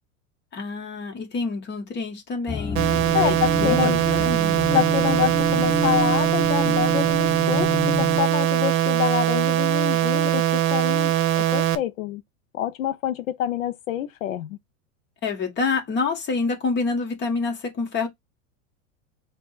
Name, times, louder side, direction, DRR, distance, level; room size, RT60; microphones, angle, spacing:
voice 1, 0.5-4.7 15.2-18.1, left 4 dB, 25° left, 1.6 m, -27 dB
sound 1, 2.5-8.2, left 4 dB, 5° left, 0.5 m, -29 dB
sound 2, 2.8-11.8, right 13 dB, 50° right, 0.9 m, -21 dB
voice 2, 3.1-4.0 4.7-12.2 12.5-14.6, left 11 dB, 75° left, 0.8 m, -27 dB
4.4 x 2.7 x 4.0 m
hypercardioid pair, 110°, 39 cm